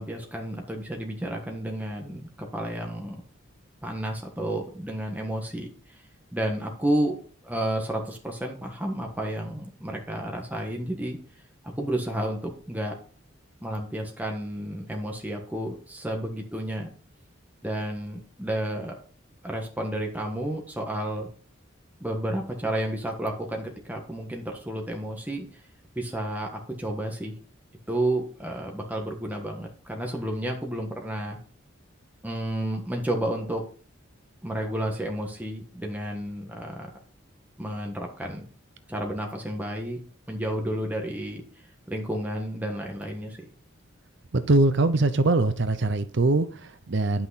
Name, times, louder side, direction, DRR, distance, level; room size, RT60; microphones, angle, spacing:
voice 1, 0.0-3.2 3.8-6.0 6.3-7.2 7.4-11.2 11.6-12.9 13.6-16.9 17.6-18.9 19.4-21.3 22.0-25.6 25.9-27.3 27.9-31.4 32.2-33.6 34.4-36.9 37.6-38.5 38.9-40.0 40.3-41.4 41.9-43.4, right 1 dB, 10° right, 1.4 m, -31 dB
voice 2, 44.3-47.3, right 2 dB, 60° right, 0.7 m, -22 dB
10.5 x 5.9 x 4.1 m
head